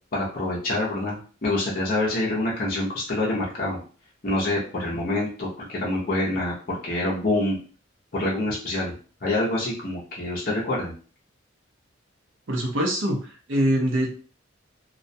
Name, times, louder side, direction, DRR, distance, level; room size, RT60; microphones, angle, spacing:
voice 1, 0.1-3.8 4.2-7.6 8.1-8.9 9.2-10.9, left 1 dB, 45° left, -5 dB, 0.6 m, -26 dB
voice 2, 12.5-14.1, equal, 65° right, 1 dB, 0.7 m, -24 dB
2.3 x 2.1 x 2.6 m, 0.39 s
head